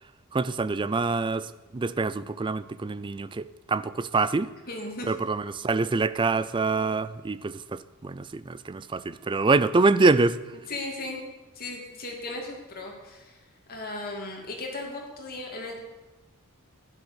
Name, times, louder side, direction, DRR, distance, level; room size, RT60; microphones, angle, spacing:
voice 1, 0.3-4.5 5.0-10.6, right 3 dB, 20° right, 0.4 m, -25 dB
voice 2, 4.7-5.1 10.7-11.2 11.5-13.4 13.7-15.8, left 2 dB, 45° left, 2.7 m, -36 dB
12.0 x 10.5 x 6.3 m
head